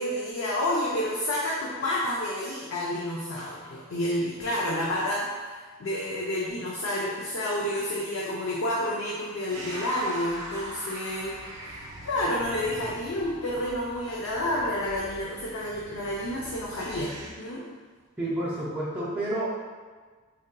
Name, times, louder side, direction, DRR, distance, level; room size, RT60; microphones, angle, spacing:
voice 1, 0.0-11.3 11.6-17.7, left 1 dB, 65° left, -5 dB, 0.4 m, -30 dB
sound 1, 9.5-17.3, right 1 dB, 85° right, 0.6 m, -42 dB
voice 2, 18.2-19.5, right 1 dB, 5° right, -10 dB, 0.5 m, -29 dB
3.6 x 2.6 x 2.2 m, 1.4 s
head